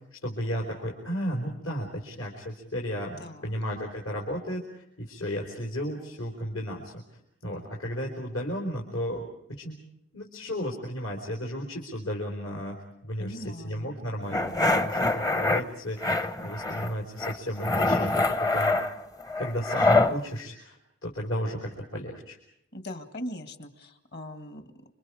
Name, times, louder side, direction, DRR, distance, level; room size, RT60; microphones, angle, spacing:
voice 1, 0.0-9.8 10.1-18.8 19.4-20.8 21.0-22.4, equal, 75° left, -1 dB, 4.5 m, -34 dB
voice 2, 3.2-3.5 13.2-13.9 22.7-24.9, left 1 dB, 50° left, 8 dB, 2.1 m, -40 dB
sound 1, 14.3-15.6 16.0-16.9 17.2-20.1, left 2 dB, 15° left, 0.8 m, -25 dB
29.0 x 25.5 x 5.0 m, 0.77 s
head